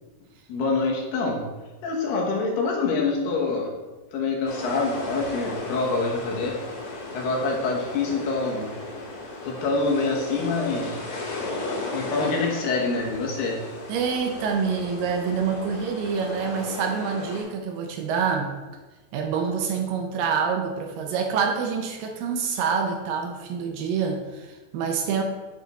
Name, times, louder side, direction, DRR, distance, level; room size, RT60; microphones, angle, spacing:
voice 1, 0.5-1.4 1.8-3.7 4.1-6.6 7.1-8.7 9.4-11.0 11.9-13.6, left 3 dB, 75° left, -1 dB, 2.7 m, -26 dB
sound 1, 4.5-17.4, left 2 dB, 90° left, 3.8 m, -35 dB
voice 2, 13.9-18.5 19.1-25.2, right 6 dB, 80° right, 3 dB, 2.2 m, -26 dB
8.4 x 3.5 x 4.1 m, 1.2 s
omnidirectional pair, 4.2 m